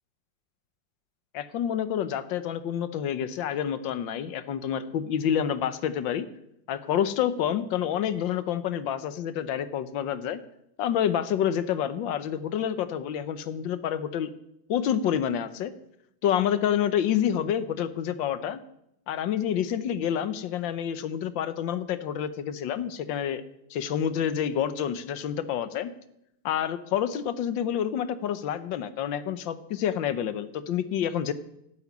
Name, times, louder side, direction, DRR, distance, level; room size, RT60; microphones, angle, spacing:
voice 1, 1.3-6.3 6.7-10.4 10.8-14.3 14.7-15.7 16.2-18.6 19.1-23.4 23.7-25.9 26.4-31.3, left 9 dB, 85° left, 13 dB, 1.6 m, -28 dB
12.0 x 8.0 x 9.7 m, 0.79 s
omnidirectional pair, 2.0 m